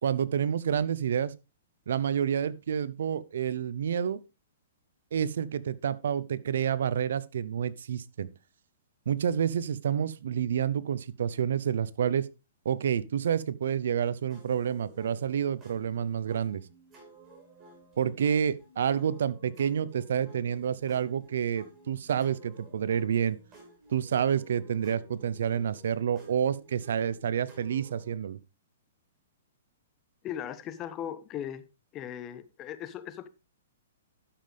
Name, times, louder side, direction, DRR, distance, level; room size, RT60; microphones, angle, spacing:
voice 1, 0.0-1.3 1.9-4.2 5.1-8.3 9.1-12.3 12.6-16.6 18.0-23.4 23.9-28.4, right 8 dB, 75° right, 0.7 m, -29 dB
sound 1, 14.3-28.2, right 2 dB, 20° right, 4.7 m, -54 dB
voice 2, 30.2-31.6 31.9-33.3, left 10 dB, 25° left, 1.0 m, -38 dB
11.5 x 7.6 x 3.4 m
hypercardioid pair, 145°, 0 cm